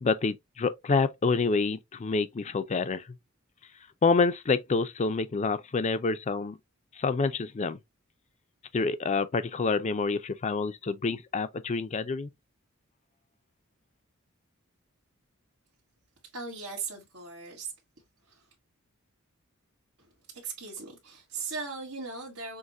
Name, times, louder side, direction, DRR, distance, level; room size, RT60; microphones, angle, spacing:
voice 1, 0.0-3.0 4.0-6.6 7.0-7.8 8.7-12.3, left 4 dB, 35° left, 0.4 m, -27 dB
voice 2, 16.3-17.7 18.3-18.4 20.4-22.6, right 4 dB, 85° right, 1.6 m, -38 dB
6.3 x 2.2 x 2.5 m
head